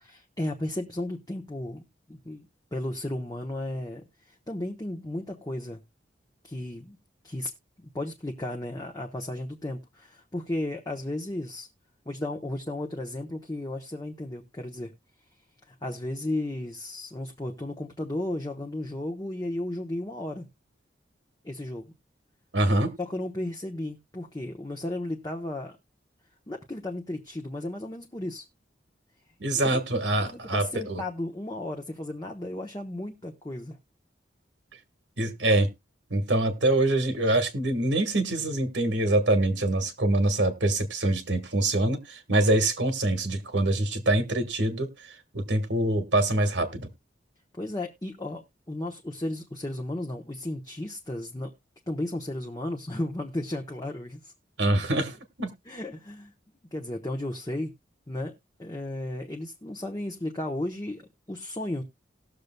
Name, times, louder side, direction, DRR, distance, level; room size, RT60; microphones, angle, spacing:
voice 1, 0.0-1.8 2.1-5.8 6.4-7.0 7.2-7.5 7.8-11.7 12.1-14.9 15.7-20.5 21.4-21.9 23.0-25.8 26.5-28.4 29.6-29.8 30.3-33.8 47.5-51.5 51.9-54.3 55.7-56.3 56.7-57.7 58.1-58.3 58.6-61.8, left 1 dB, 20° left, 0.9 m, -34 dB
voice 2, 22.5-22.9 29.4-31.0 35.2-35.7 36.1-44.9 45.3-46.9 54.6-55.5, right 1 dB, 75° right, 1.4 m, -25 dB
18.5 x 6.6 x 2.2 m
head